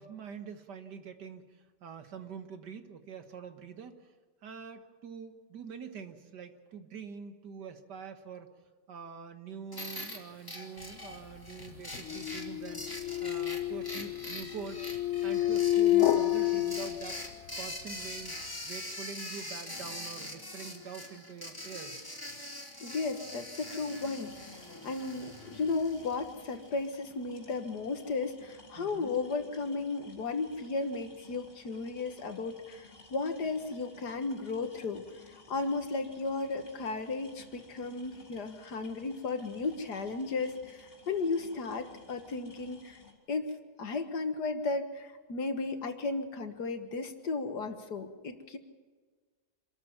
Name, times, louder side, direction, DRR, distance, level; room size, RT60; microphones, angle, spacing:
voice 1, 0.0-4.1 4.4-8.5 8.9-14.8 15.2-17.2 17.6-18.4 18.6-22.0 28.8-29.2 36.6-36.7, right 6 dB, 80° right, 8 dB, 2.0 m, -45 dB
sound 1, 9.7-26.7, left 1 dB, 10° left, 2.6 m, -43 dB
sound 2, 11.1-17.6, left 14 dB, 55° left, 1.0 m, -30 dB
voice 2, 22.8-24.6 24.8-35.0 35.3-43.0 43.3-43.5 43.8-48.6, left 3 dB, 75° left, 7 dB, 2.1 m, -34 dB
sound 3, 23.9-43.1, left 3 dB, 35° left, 3.8 m, -56 dB
26.0 x 13.5 x 7.3 m, 1.4 s
omnidirectional pair, 1.8 m